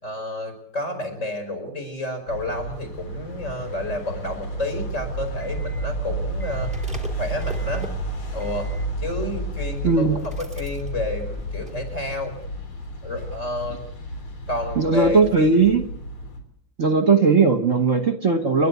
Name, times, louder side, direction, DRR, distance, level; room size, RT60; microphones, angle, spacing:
voice 1, 0.0-6.7 7.2-7.9 8.3-8.7 9.0-12.3 13.0-13.8 14.5-15.6, left 1 dB, 35° left, 5 dB, 5.6 m, -30 dB
sound 1, 2.3-16.4, right 1 dB, 90° left, 4.6 m, -32 dB
sound 2, 5.0-12.1 12.3-12.4, right 1 dB, 5° right, 2.9 m, -36 dB
voice 2, 9.8-10.2 14.8-15.8 16.8-18.7, right 4 dB, 45° right, 7 dB, 1.4 m, -18 dB
29.5 x 12.5 x 8.2 m, 0.70 s
omnidirectional pair, 2.2 m